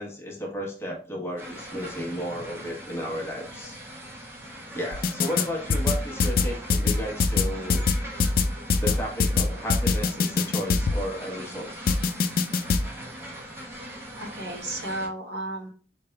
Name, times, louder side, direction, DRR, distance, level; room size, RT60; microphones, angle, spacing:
voice 1, 0.0-3.8 4.7-7.8 8.8-11.7, equal, 15° left, -1 dB, 0.9 m, -33 dB
sound 1, 1.4-15.1, equal, 15° right, 0.8 m, -41 dB
sound 2, 4.9-5.4 5.7-11.0 11.9-12.8, left 4 dB, 50° left, 0.4 m, -22 dB
voice 2, 13.7-15.7, right 1 dB, 65° right, 0 dB, 1.1 m, -34 dB
4.2 x 3.4 x 2.2 m, 0.40 s
head